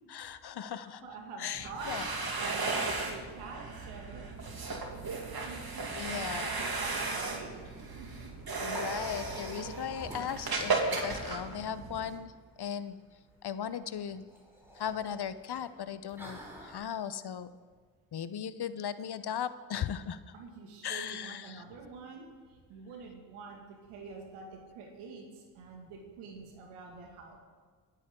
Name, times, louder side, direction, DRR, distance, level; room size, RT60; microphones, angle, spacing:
voice 1, 0.1-1.1 1.4-2.0 5.9-6.5 8.6-12.3 12.6-13.0 13.4-14.2 14.7-17.5 18.1-20.2 20.8-21.6, left 8 dB, 50° left, 13 dB, 0.9 m, -37 dB
voice 2, 0.7-2.1 2.4-4.8 5.3-7.5 7.9-8.3 20.3-27.4, right 4 dB, 90° right, 1 dB, 2.3 m, -47 dB
sound 1, 1.5-12.2, right 3 dB, 45° right, 2.5 m, -35 dB
Liquid, 8.2-16.8, equal, 5° right, 4.9 m, -50 dB
22.0 x 9.2 x 3.8 m, 1.5 s
supercardioid pair, 45°, 50 cm